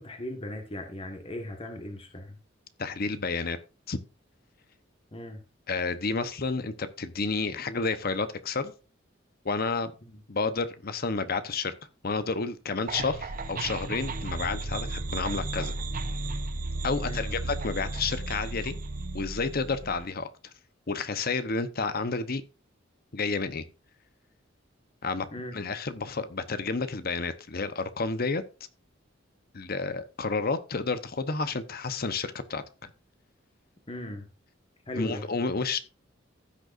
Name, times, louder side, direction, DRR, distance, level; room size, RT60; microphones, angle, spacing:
voice 1, 0.0-2.4 5.1-5.4 10.0-10.2 17.0-17.3 25.3-25.5 33.9-34.3 34.9-35.3, left 1 dB, 30° left, 1.4 m, -38 dB
voice 2, 2.8-3.6 3.9-4.0 5.7-8.7 9.4-9.9 10.3-11.7 12.0-15.7 16.8-18.8 19.1-20.3 20.9-22.4 23.1-23.7 25.0-25.3 25.5-28.4 29.5-32.6 35.0-35.8, left 4 dB, 50° left, 0.9 m, -30 dB
sound 1, 12.9-20.0, right 2 dB, 45° right, 0.8 m, -34 dB
15.5 x 6.5 x 2.6 m
head